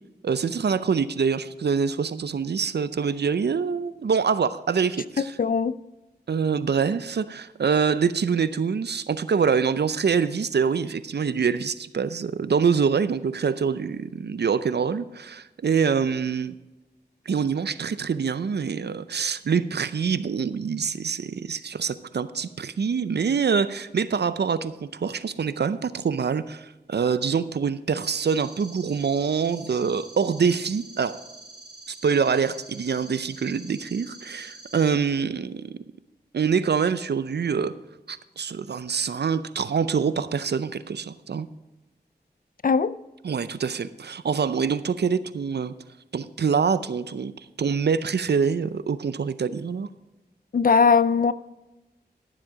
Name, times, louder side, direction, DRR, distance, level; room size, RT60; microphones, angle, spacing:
voice 1, 0.2-5.3 6.3-16.6 17.3-31.2 32.0-35.8 36.3-37.7 38.1-41.5 43.2-45.7 46.1-47.3 47.6-49.9, right 6 dB, 75° right, 0.6 m, -25 dB
voice 2, 5.4-5.7 42.6-42.9 50.5-51.3, left 5 dB, 55° left, 0.5 m, -19 dB
sound 1, 28.0-34.9, right 2 dB, 20° right, 2.7 m, -46 dB
12.0 x 7.4 x 5.0 m
cardioid pair, 45°, 17 cm